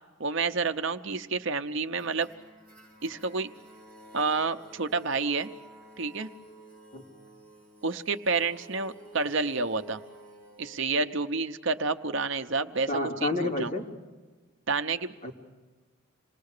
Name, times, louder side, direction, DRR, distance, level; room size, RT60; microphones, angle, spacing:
voice 1, 0.2-2.3 3.0-3.5 4.1-5.5 6.0-6.3 7.8-10.0 10.6-12.9 13.2-13.7 14.7-15.1, right 4 dB, 60° right, 8 dB, 0.8 m, -29 dB
sound 1, 1.9-10.8, right 1 dB, 5° left, 6.3 m, -52 dB
voice 2, 12.9-13.8 15.2-15.3, left 1 dB, 35° left, -1 dB, 3.5 m, -29 dB
27.5 x 20.5 x 6.7 m, 1.3 s
head